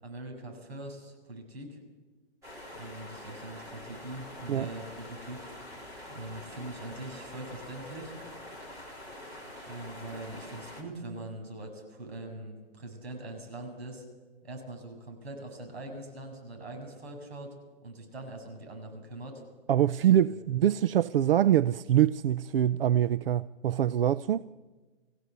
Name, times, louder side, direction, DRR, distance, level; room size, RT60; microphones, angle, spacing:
voice 1, 0.0-1.8 2.7-5.5 6.1-8.1 9.7-14.0 14.4-17.5 17.8-19.4 20.3-20.4, right 2 dB, 85° right, 7.4 m, -42 dB
sound 1, 2.4-10.8, left 1 dB, 10° right, 3.5 m, -45 dB
voice 2, 19.7-24.5, right 11 dB, 65° right, 0.6 m, -24 dB
24.0 x 16.0 x 8.2 m
hypercardioid pair, 165°, 31 cm